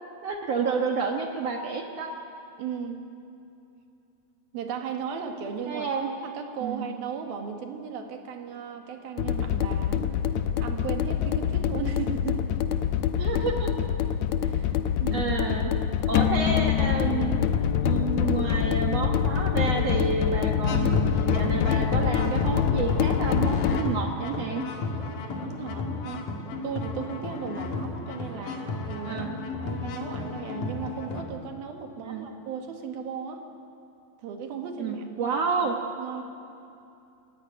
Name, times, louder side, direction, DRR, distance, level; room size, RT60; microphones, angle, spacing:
voice 1, 0.2-2.1 5.7-6.1 6.6-6.9 13.2-13.7 15.1-15.7 16.1-17.4 17.8-24.6 29.1-29.4 32.0-32.3 34.8-35.8, right 5 dB, 60° right, 2 dB, 1.8 m, -29 dB
voice 2, 2.6-3.0 4.5-5.9 6.2-10.1 10.6-12.5 14.4-15.4 25.4-26.3 26.6-29.3 29.5-33.5 34.2-35.4 35.7-36.2, right 6 dB, 80° right, 4 dB, 3.6 m, -36 dB
sound 1, 9.2-23.8, left 9 dB, 85° left, 1.6 m, -25 dB
sound 2, 20.7-31.2, left 3 dB, 65° left, 3.2 m, -32 dB
26.5 x 15.5 x 10.0 m, 2.7 s
omnidirectional pair, 4.3 m